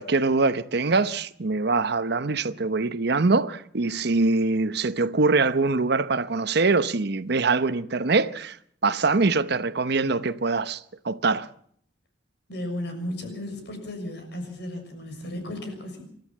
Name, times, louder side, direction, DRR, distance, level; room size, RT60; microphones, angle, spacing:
voice 1, 0.0-8.6 8.8-11.5, right 3 dB, 60° right, 0.9 m, -23 dB
voice 2, 12.5-16.0, left 1 dB, 65° left, 6.5 m, -34 dB
28.5 x 13.0 x 7.3 m
head